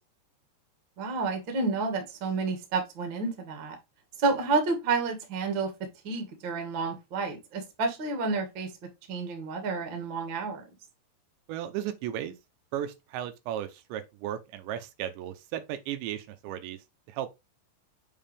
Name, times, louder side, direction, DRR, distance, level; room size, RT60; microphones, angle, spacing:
voice 1, 1.0-3.7 4.2-5.7 6.0-8.7 9.1-10.6, right 4 dB, 45° right, 1.7 m, -30 dB
voice 2, 11.5-12.4 12.7-16.8 17.1-17.3, right 11 dB, 85° right, 3.1 m, -35 dB
7.4 x 4.9 x 3.5 m
omnidirectional pair, 5.1 m